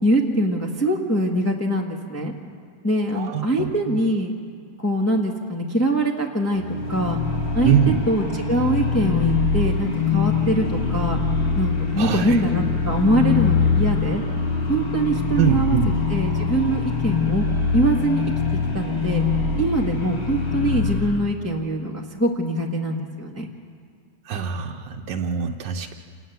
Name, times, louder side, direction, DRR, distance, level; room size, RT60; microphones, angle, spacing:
voice 1, 0.0-2.3 2.8-4.3 4.8-6.6 6.9-7.2 7.5-7.7 8.1-11.2 11.6-14.2 14.7-15.8 16.1-17.4 17.7-18.2 18.7-19.2 19.6-23.5, right 1 dB, 10° left, 0 dB, 1.3 m, -23 dB
voice 2, 3.1-4.0 7.6-8.1 12.0-12.4 15.4-15.9 24.2-25.9, right 9 dB, 80° right, 0 dB, 1.5 m, -23 dB
sound 1, 6.5-21.3, left 5 dB, 35° left, 1.9 m, -23 dB
27.5 x 13.0 x 9.3 m, 2.1 s
omnidirectional pair, 1.9 m